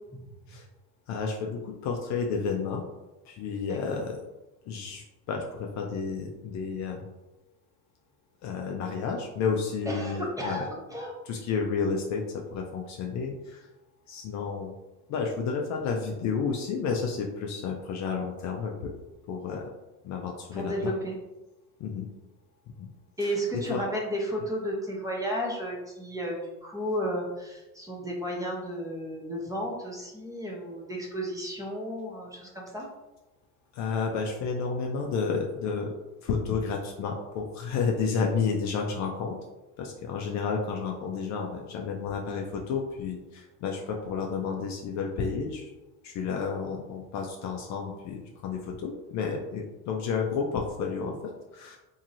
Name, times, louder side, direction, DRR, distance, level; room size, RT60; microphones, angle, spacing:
voice 1, 1.1-2.8 3.3-4.2 4.7-7.1 8.4-10.7 11.3-13.7 14.1-14.7 15.1-18.9 19.3-19.6 20.0-20.9 21.8-22.1 22.8-22.9 23.2-23.9 33.7-35.9 36.2-39.4 39.8-45.7 46.0-51.8, left 5 dB, 45° left, 1 dB, 0.4 m, -31 dB
voice 2, 3.7-4.0 9.9-11.1 20.5-21.2 23.2-32.9, equal, 10° right, -3 dB, 0.7 m, -33 dB
2.9 x 2.7 x 2.5 m, 1.0 s
supercardioid pair, 105°, 42 cm